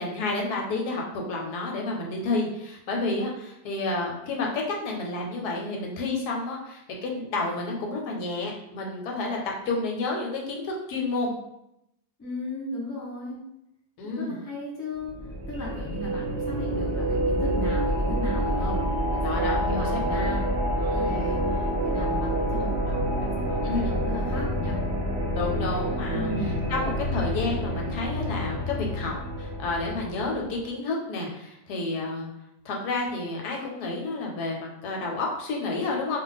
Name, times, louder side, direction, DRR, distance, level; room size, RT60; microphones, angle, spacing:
voice 1, 0.0-9.4 9.7-11.3 14.0-14.4 19.2-20.3 20.9-21.2 23.6-24.0 25.3-26.3 26.7-32.3 32.6-36.2, left 3 dB, 85° left, 0 dB, 1.2 m, -30 dB
voice 2, 12.2-13.4 14.0-18.8 19.1-20.5 20.7-24.8 26.1-26.6, left 1 dB, 25° left, -4 dB, 0.4 m, -36 dB
sound 1, 15.1-30.5, equal, 45° right, 0.8 m, -27 dB
2.5 x 2.4 x 3.9 m, 0.82 s
omnidirectional pair, 1.6 m